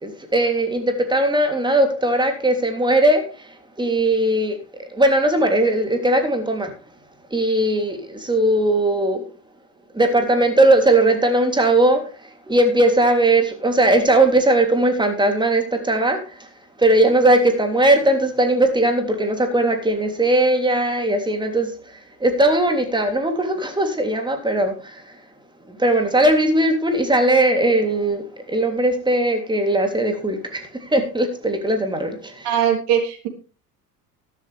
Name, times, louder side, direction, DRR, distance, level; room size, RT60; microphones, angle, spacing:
voice 1, 0.0-3.5 3.8-4.6 4.9-6.7 7.3-9.2 9.9-12.0 12.5-16.5 16.8-25.0 25.7-32.5, right 1 dB, 10° right, 4 dB, 3.3 m, -19 dB
voice 2, 32.4-33.3, right 9 dB, 55° right, 3 dB, 3.7 m, -20 dB
13.0 x 12.0 x 3.5 m, 0.36 s
hypercardioid pair, 75°, 48 cm